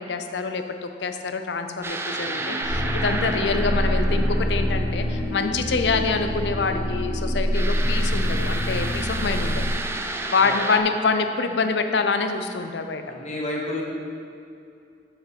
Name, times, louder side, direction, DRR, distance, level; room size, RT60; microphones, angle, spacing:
voice 1, 0.0-9.6 10.3-13.0, left 4 dB, 75° left, 7 dB, 0.6 m, -26 dB
sound 1, 1.8-5.3 7.5-10.8, right 2 dB, 15° right, 0.4 m, -31 dB
sound 2, 2.1-8.1, equal, 70° right, 1.5 m, -41 dB
sound 3, 2.6-9.7, equal, 15° left, 2.0 m, -25 dB
voice 2, 13.0-13.8, left 1 dB, 45° left, -2 dB, 1.3 m, -30 dB
6.9 x 5.9 x 5.3 m, 2.6 s
head